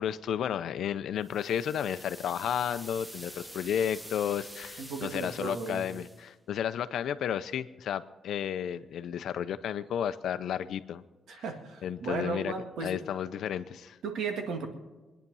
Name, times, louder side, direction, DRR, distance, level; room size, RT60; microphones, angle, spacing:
voice 1, 0.0-11.0 11.3-11.4 11.8-12.5 12.8-14.0, left 9 dB, 65° left, 12 dB, 0.6 m, -32 dB
sound 1, 1.2-6.3, equal, 5° right, 0.7 m, -47 dB
voice 2, 4.8-5.9 11.3-12.9 14.0-14.7, right 4 dB, 80° right, 4 dB, 2.0 m, -35 dB
22.5 x 10.0 x 5.5 m, 1.2 s
wide cardioid pair, 175°, 0 cm